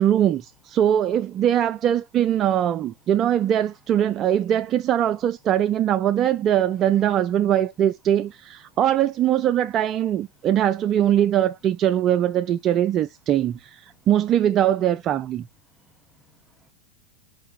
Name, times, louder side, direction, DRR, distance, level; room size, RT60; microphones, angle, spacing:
voice 1, 0.0-15.5, right 11 dB, 30° right, 0.3 m, -21 dB
voice 2, 15.8-16.7, right 2 dB, 5° right, 1.0 m, -55 dB
5.4 x 3.5 x 2.4 m
figure-of-eight pair, 90°, 0 cm